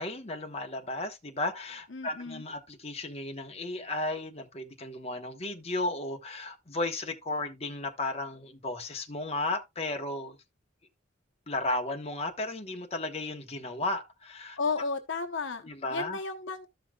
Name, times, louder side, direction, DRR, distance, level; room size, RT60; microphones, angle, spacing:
voice 1, 0.0-10.4 11.5-14.6 15.6-16.2, left 2 dB, 30° left, 1.2 m, -34 dB
voice 2, 1.9-2.4 14.6-16.7, left 4 dB, 70° left, 0.9 m, -33 dB
13.5 x 5.7 x 2.3 m
head